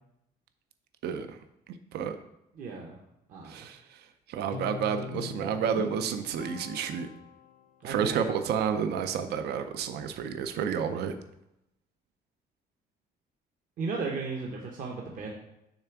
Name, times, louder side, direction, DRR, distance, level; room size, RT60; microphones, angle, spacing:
voice 1, 1.0-1.4 1.7-2.2 3.4-7.1 7.8-11.2, right 7 dB, 80° right, 9 dB, 0.5 m, -30 dB
voice 2, 2.6-3.0 3.3-3.6 7.8-8.2 13.8-15.3, right 4 dB, 55° right, 0 dB, 0.9 m, -35 dB
Guitar, 4.5-7.8, left 8 dB, 55° left, 0.5 m, -42 dB
7.0 x 3.4 x 5.8 m, 0.86 s
cardioid pair, 160°, 17 cm